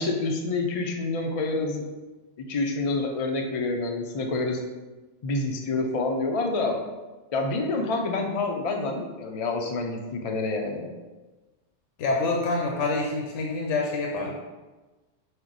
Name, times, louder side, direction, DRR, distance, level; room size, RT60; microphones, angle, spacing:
voice 1, 0.0-1.9 2.5-4.6 5.2-6.8 7.3-10.9, left 3 dB, 60° left, 2 dB, 0.3 m, -27 dB
voice 2, 12.0-14.3, left 3 dB, 80° left, 0 dB, 0.9 m, -26 dB
6.0 x 2.1 x 3.9 m, 1.2 s
omnidirectional pair, 1.3 m